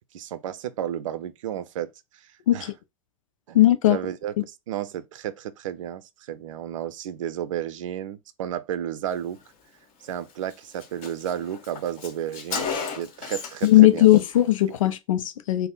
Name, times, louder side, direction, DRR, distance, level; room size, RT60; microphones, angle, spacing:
voice 1, 0.1-1.9 2.5-2.7 3.5-3.6 3.9-4.3 4.7-6.0 6.3-9.4 10.0-12.7 12.9-14.1, right 10 dB, 65° right, 0.5 m, -32 dB
voice 2, 3.5-4.0 4.4-4.5 13.6-15.7, left 14 dB, 65° left, 0.5 m, -18 dB
Car, 10.1-10.2 10.5-10.6 10.8-13.8 14.0-14.3, left 5 dB, 40° left, 1.5 m, -34 dB
3.5 x 2.1 x 3.9 m
figure-of-eight pair, 95°, 18 cm